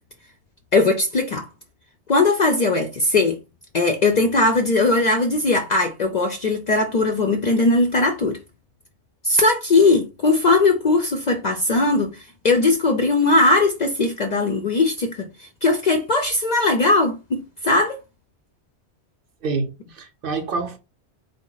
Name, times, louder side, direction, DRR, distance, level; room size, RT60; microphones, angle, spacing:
voice 1, 0.7-1.5 2.1-3.4 3.7-8.4 9.2-18.0, left 2 dB, 55° left, 0.5 m, -19 dB
voice 2, 19.4-20.8, right 4 dB, 60° right, 0.7 m, -27 dB
3.9 x 2.1 x 3.8 m
omnidirectional pair, 1.1 m